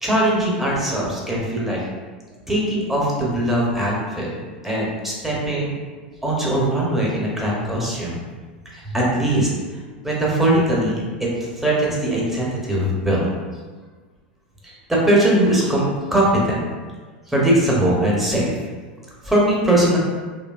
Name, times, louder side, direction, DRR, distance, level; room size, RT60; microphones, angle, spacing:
voice 1, 0.0-1.8 2.5-4.3 4.6-5.8 6.2-8.1 8.7-9.5 10.0-11.3 11.6-13.3 14.6-16.6 17.3-18.6 19.2-20.0, right 1 dB, 5° right, -5 dB, 0.7 m, -20 dB
2.7 x 2.2 x 2.3 m, 1.4 s
hypercardioid pair, 100°, 5 cm